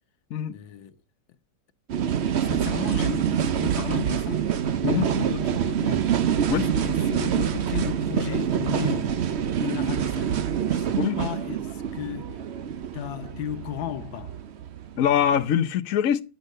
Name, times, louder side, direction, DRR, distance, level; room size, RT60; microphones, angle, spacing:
voice 1, 0.5-1.0 2.4-4.5 4.9-6.1 6.5-9.3 9.6-12.5 12.9-14.4, left 10 dB, 80° left, 1.6 m, -35 dB
sound 1, 1.9-15.4, right 8 dB, 85° right, 0.5 m, -26 dB
voice 2, 15.0-16.2, left 9 dB, 55° left, 1.0 m, -23 dB
11.0 x 8.1 x 6.5 m
omnidirectional pair, 2.0 m